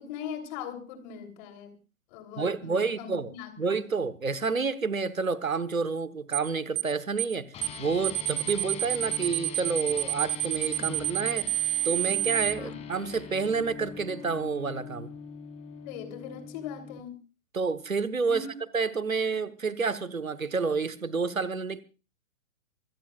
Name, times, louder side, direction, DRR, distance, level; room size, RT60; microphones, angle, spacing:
voice 1, 0.0-1.8 2.1-3.9 12.5-12.7 15.8-17.2 18.3-18.5, left 7 dB, 35° left, 3.2 m, -40 dB
voice 2, 2.4-7.5 7.8-11.5 11.8-15.1 17.5-18.5 18.7-21.8, right 4 dB, 85° right, 1.3 m, -29 dB
sound 1, 6.3-6.5 6.8-6.9 7.2-7.4 7.6-7.8 8.0-12.5, right 14 dB, 40° right, 0.7 m, -28 dB
sound 2, 7.5-17.0, left 6 dB, 15° left, 2.0 m, -42 dB
25.0 x 17.0 x 2.4 m
figure-of-eight pair, 115°, 40 cm